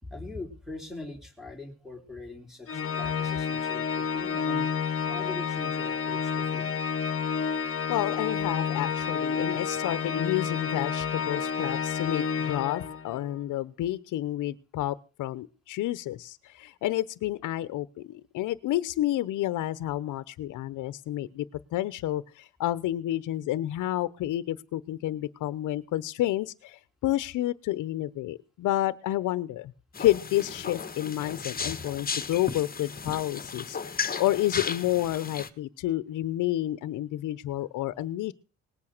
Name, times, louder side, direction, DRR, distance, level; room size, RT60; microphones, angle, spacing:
voice 1, 0.0-6.7 25.1-25.3, left 2 dB, ahead, 1 dB, 4.0 m, -42 dB
Organ, 2.7-13.3, left 6 dB, 50° left, 1.2 m, -30 dB
voice 2, 7.9-21.4 21.7-29.7 30.0-38.3, left 14 dB, 85° left, 15 dB, 0.9 m, -30 dB
sound 1, 29.9-35.5, left 5 dB, 30° left, 1.6 m, -35 dB
19.5 x 8.5 x 6.6 m, 0.36 s
cardioid pair, 90°, 30 cm